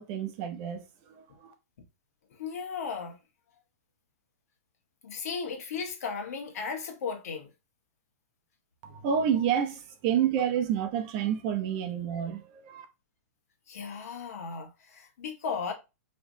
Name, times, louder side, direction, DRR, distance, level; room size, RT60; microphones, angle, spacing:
voice 1, 0.0-1.5 8.8-12.9, right 8 dB, 35° right, 0.8 m, -29 dB
voice 2, 2.3-3.2 5.0-7.5 13.7-15.7, left 5 dB, 65° left, 1.6 m, -35 dB
4.9 x 3.3 x 2.7 m
hypercardioid pair, 150°, 9 cm